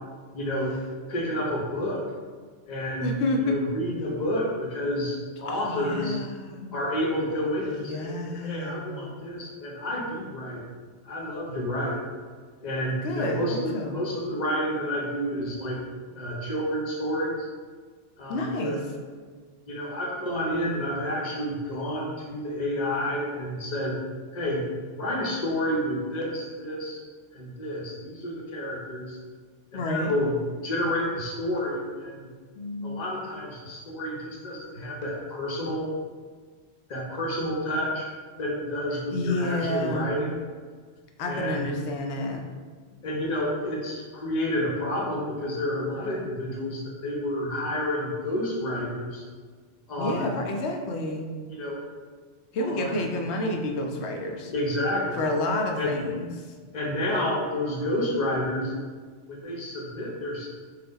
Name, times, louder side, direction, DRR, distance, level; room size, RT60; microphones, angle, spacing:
voice 1, 0.3-0.7 1.1-2.0 2.7-6.2 6.7-10.6 11.0-12.0 12.6-15.8 16.1-17.5 18.2-18.8 19.7-24.0 24.3-24.6 24.9-27.0 27.3-29.2 29.7-32.3 32.8-35.9 36.9-38.1 38.4-40.4 41.3-41.7 43.0-49.2 49.9-50.4 51.5-51.8 52.6-53.0 54.5-55.2 55.8-55.9 56.7-58.7 59.3-60.5, left 1 dB, 40° left, -2 dB, 0.7 m, -30 dB
voice 2, 3.0-3.6 5.5-6.8 7.7-9.1 13.0-14.0 18.3-18.9 29.7-30.1 32.6-33.0 39.1-40.1 41.2-42.5 50.0-51.3 52.5-54.5 55.2-56.5, left 2 dB, 70° left, 3 dB, 0.8 m, -29 dB
4.1 x 2.2 x 3.9 m, 1.5 s
omnidirectional pair, 1.2 m